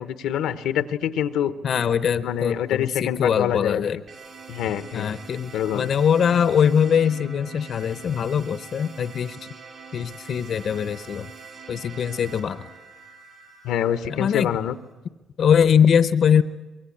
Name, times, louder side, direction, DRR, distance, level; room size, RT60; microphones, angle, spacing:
voice 1, 0.0-1.5 2.2-3.8 4.5-5.1 5.5-5.9 13.6-14.7, left 10 dB, 90° left, 13 dB, 0.9 m, -25 dB
voice 2, 1.6-4.0 4.9-9.5 9.9-11.3 11.7-12.6 14.1-14.5 15.4-16.4, left 7 dB, 60° left, 14 dB, 0.7 m, -22 dB
sound 1, 4.1-14.9, right 5 dB, 50° right, 5.9 m, -44 dB
24.0 x 21.5 x 8.6 m, 1.2 s
cardioid pair, 90°, 0 cm